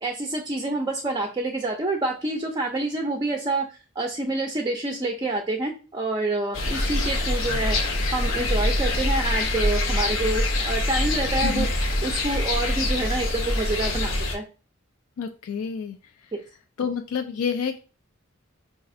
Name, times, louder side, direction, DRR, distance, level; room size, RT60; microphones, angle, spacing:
voice 1, 0.0-7.8 8.1-11.7 12.0-14.4 16.3-16.4, right 2 dB, 20° right, 2 dB, 0.4 m, -27 dB
sound 1, 6.5-14.4, left 1 dB, 70° left, 0.7 m, -24 dB
voice 2, 15.2-16.0 16.8-17.8, left 6 dB, 85° left, 6 dB, 0.3 m, -28 dB
4.9 x 2.4 x 2.6 m, 0.34 s
head